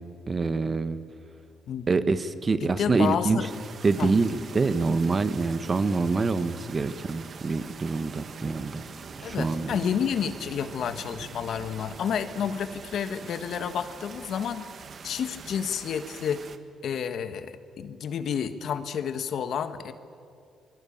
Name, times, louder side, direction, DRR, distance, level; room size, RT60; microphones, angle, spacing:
voice 1, 0.3-1.0 1.9-3.4 3.8-8.8 9.2-9.7, right 4 dB, 35° right, 12 dB, 1.4 m, -25 dB
voice 2, 2.6-3.5 4.0-4.1 9.2-14.6 15.0-16.4 16.8-19.9, left 8 dB, 65° left, 11 dB, 1.5 m, -30 dB
sound 1, 3.4-16.6, right 5 dB, 50° right, 1.5 m, -44 dB
25.5 x 21.0 x 8.7 m, 2.5 s
cardioid pair, 90°, 0 cm